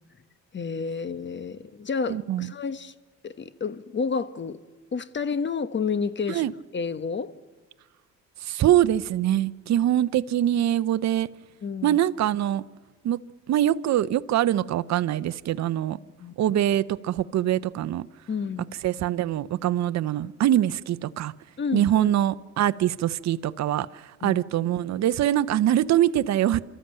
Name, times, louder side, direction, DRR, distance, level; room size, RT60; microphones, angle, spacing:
voice 1, 0.5-2.9 3.2-4.6 4.9-6.5 6.7-7.3 11.6-12.0 16.2-16.3 18.3-18.7 21.6-22.1 24.2-24.4, left 5 dB, 40° left, 1.2 m, -30 dB
voice 2, 2.1-2.5 6.3-6.5 8.4-11.3 11.8-12.6 13.0-13.2 13.5-16.0 16.4-18.1 18.8-21.3 21.7-26.6, right 12 dB, 65° right, 0.7 m, -23 dB
28.0 x 13.5 x 9.0 m
cardioid pair, 90°, 30 cm